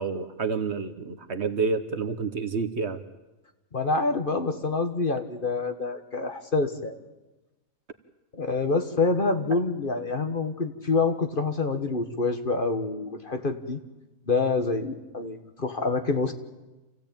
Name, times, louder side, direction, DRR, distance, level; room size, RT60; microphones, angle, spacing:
voice 1, 0.0-3.0, right 4 dB, 55° right, 10 dB, 1.3 m, -29 dB
voice 2, 3.7-7.0 8.3-13.8 14.3-16.3, left 3 dB, 40° left, 7 dB, 1.5 m, -27 dB
28.0 x 16.0 x 8.9 m, 1.1 s
omnidirectional pair, 1.5 m